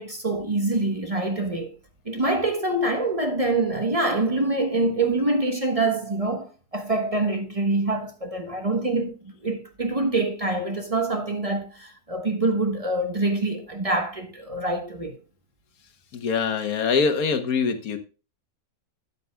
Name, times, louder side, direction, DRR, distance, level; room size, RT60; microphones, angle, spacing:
voice 1, 0.0-1.8 2.0-9.1 9.4-15.2, right 2 dB, 25° right, 1.0 m, -25 dB
voice 2, 16.1-18.0, left 5 dB, 85° left, 1.6 m, -23 dB
13.0 x 8.3 x 2.2 m
omnidirectional pair, 1.5 m